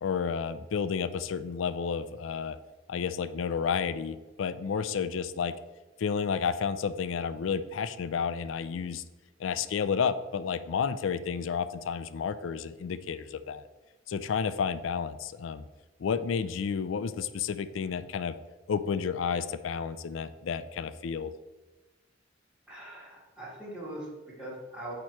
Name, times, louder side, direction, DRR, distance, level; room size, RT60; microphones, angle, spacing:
voice 1, 0.0-2.6 2.9-5.5 6.0-9.0 9.4-13.6 14.1-15.6 16.0-18.3 18.7-21.3, left 6 dB, 85° left, 13 dB, 0.4 m, -31 dB
voice 2, 22.7-24.9, right 1 dB, 5° right, -7 dB, 2.2 m, -41 dB
8.6 x 3.0 x 4.6 m, 1.1 s
head